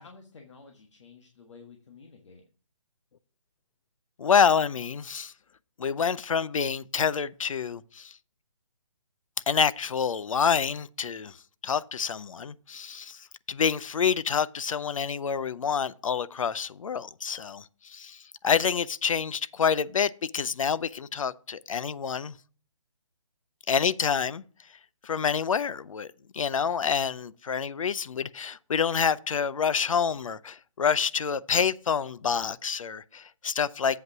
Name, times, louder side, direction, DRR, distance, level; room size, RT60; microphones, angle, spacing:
voice 1, 0.0-2.4, left 4 dB, 65° left, 1.5 m, -51 dB
voice 2, 4.2-5.3 5.8-8.1 9.5-11.3 11.6-13.2 13.5-22.3 23.7-24.4 25.0-26.1 26.3-34.0, left 6 dB, 80° left, 0.5 m, -27 dB
7.9 x 5.4 x 5.9 m
hypercardioid pair, 155°, 17 cm